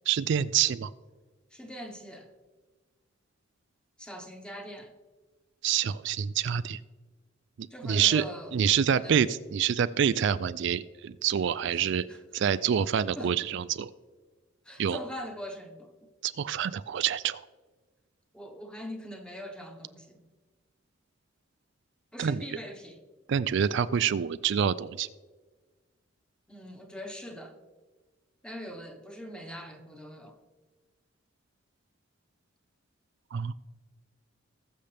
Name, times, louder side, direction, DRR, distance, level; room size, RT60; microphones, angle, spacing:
voice 1, 0.1-0.9 5.6-6.8 7.8-8.2 8.5-12.1 12.3-13.9 14.8-15.0 16.2-17.4 22.2-22.4 23.3-25.1 33.3-33.5, right 8 dB, 65° right, 14 dB, 0.4 m, -26 dB
voice 2, 1.5-2.3 4.0-4.9 7.7-8.5 8.9-9.2 11.7-12.2 13.2-13.3 14.6-15.9 18.3-20.2 22.1-23.0 26.5-27.6 28.4-30.4, equal, 5° left, 4 dB, 1.2 m, -42 dB
20.0 x 6.7 x 3.4 m, 1.3 s
head